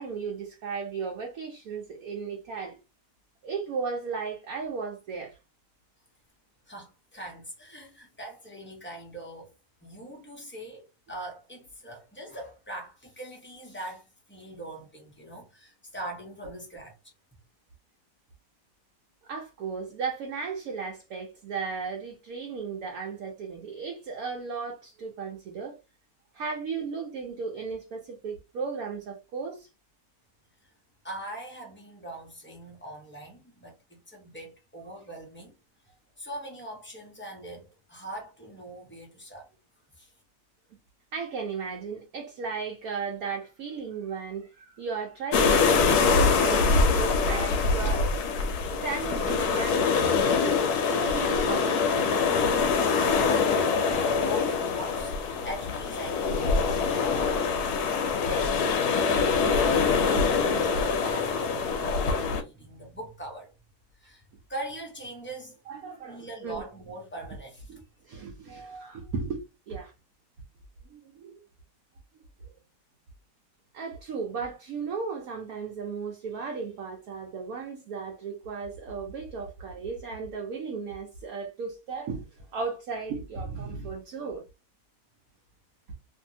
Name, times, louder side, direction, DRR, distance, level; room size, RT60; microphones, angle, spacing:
voice 1, 0.0-2.8 3.4-5.4 19.2-25.8 26.3-29.7 41.1-48.1 48.8-50.5 50.8-52.1 65.7-66.6 67.7-67.8 68.0-69.9 70.9-71.4 73.7-84.4, right 5 dB, 65° right, 1.0 m, -35 dB
voice 2, 6.7-9.5 9.8-16.9 31.0-35.5 36.2-39.5 40.0-40.1 52.9-57.6 58.2-58.6 59.1-63.5 64.0-64.2 64.5-65.6 66.1-67.7, right 1 dB, 20° left, 0.3 m, -41 dB
sound 1, 45.3-62.4, left 5 dB, 75° left, 1.1 m, -24 dB
2.6 x 2.6 x 2.6 m
omnidirectional pair, 1.8 m